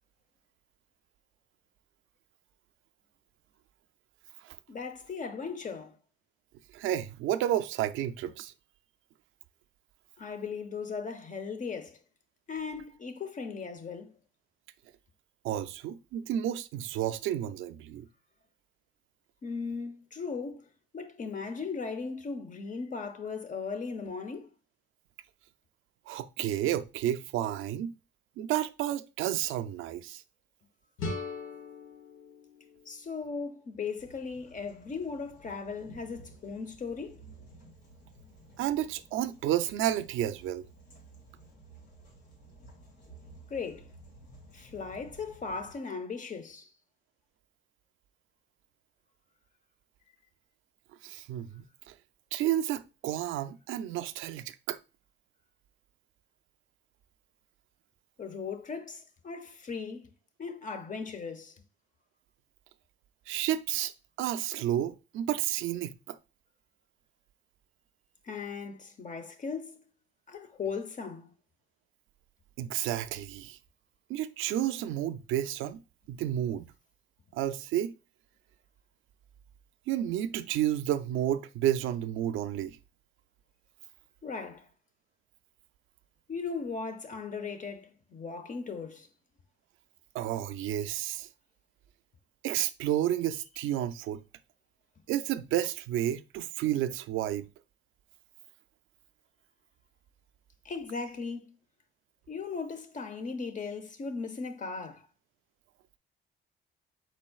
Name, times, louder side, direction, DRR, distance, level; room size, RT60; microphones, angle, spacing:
voice 1, 4.7-6.0 10.2-12.0 12.5-14.1 19.4-20.7 20.9-24.5 32.9-37.2 43.5-43.9 44.5-46.7 58.2-60.1 60.4-61.6 68.2-69.8 70.3-71.3 84.2-84.7 86.3-89.1 100.6-101.5 102.3-105.1, left 5 dB, 40° left, 0.8 m, -37 dB
voice 2, 6.7-8.5 15.4-18.1 26.1-27.9 28.4-30.2 38.6-40.7 51.0-51.9 52.3-54.8 63.3-63.9 64.2-66.2 72.6-73.6 74.1-75.8 76.1-76.7 77.3-77.9 79.9-82.8 90.1-91.3 92.4-94.2 95.1-97.5, right 12 dB, 85° right, 0.4 m, -31 dB
sound 1, 31.0-33.9, left 3 dB, 90° left, 1.2 m, -41 dB
sound 2, 34.0-45.7, right 2 dB, 60° left, 2.2 m, -54 dB
4.6 x 4.2 x 2.3 m
cardioid pair, 90°, 20 cm